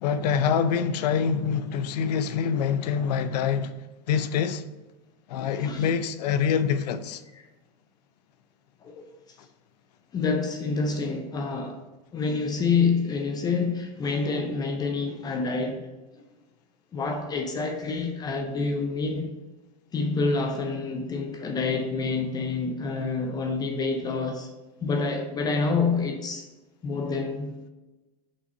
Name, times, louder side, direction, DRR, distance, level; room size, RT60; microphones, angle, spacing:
voice 1, 0.0-3.7 4.1-4.6 5.3-7.2, left 7 dB, 70° left, 0.6 m, -25 dB
voice 2, 5.4-5.9 7.3-7.4 8.8-9.0 10.1-11.8 12.1-15.8 16.9-19.3 19.9-24.5 24.8-26.4 26.8-27.5, left 4 dB, 20° left, 0.5 m, -27 dB
5.4 x 4.1 x 5.4 m
supercardioid pair, 145°, 21 cm